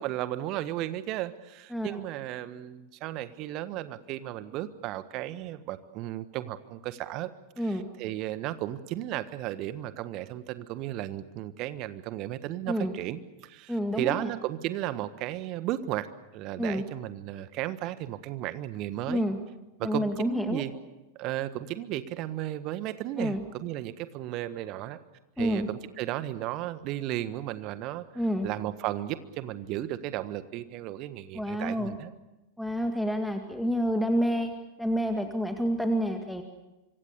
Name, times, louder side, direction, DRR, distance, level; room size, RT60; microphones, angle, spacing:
voice 1, 0.0-7.3 7.6-16.1 16.3-19.3 19.8-20.7 21.1-25.0 25.4-28.1 28.4-32.1, right 14 dB, 40° right, 13 dB, 1.5 m, -34 dB
voice 2, 13.7-14.3 16.6-16.8 19.1-19.4 19.8-20.6 23.2-23.4 25.4-25.7 28.2-28.5 31.3-31.9 32.6-34.5 34.8-36.4, equal, ahead, 5 dB, 2.1 m, -28 dB
26.0 x 25.0 x 6.9 m, 1.0 s
figure-of-eight pair, 90°, 0 cm